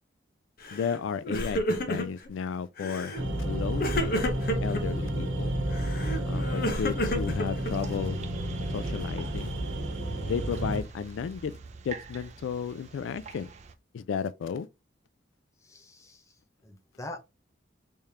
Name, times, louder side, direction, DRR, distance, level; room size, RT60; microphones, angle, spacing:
Crying sobbing, 0.6-1.0 1.2-2.3 2.8-3.2 3.8-4.8 5.7-8.0, equal, 50° left, 0.8 m, -31 dB
voice 1, 0.7-4.1 4.6-5.5 6.3-8.2 8.7-9.6 10.3-11.6 11.8-13.5 13.9-14.7, left 6 dB, 85° left, 0.3 m, -33 dB
sound 1, 3.2-10.8, right 1 dB, 80° right, 1.0 m, -31 dB
sound 2, 7.6-13.7, right 4 dB, 35° right, 0.4 m, -44 dB
voice 2, 15.6-17.2, left 2 dB, 15° left, 0.6 m, -44 dB
3.5 x 3.2 x 2.8 m
head